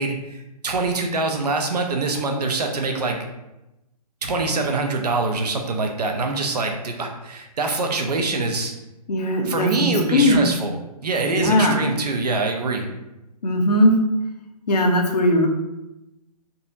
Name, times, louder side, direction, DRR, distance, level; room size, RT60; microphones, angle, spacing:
voice 1, 0.0-3.2 4.2-8.7 9.4-10.7 11.0-12.9, right 3 dB, 75° right, 3 dB, 0.7 m, -24 dB
voice 2, 9.1-10.5 11.3-11.8 13.4-14.0 14.7-15.5, left 1 dB, 80° left, 2 dB, 0.8 m, -18 dB
4.0 x 2.8 x 2.5 m, 0.95 s
hypercardioid pair, 140°, 20 cm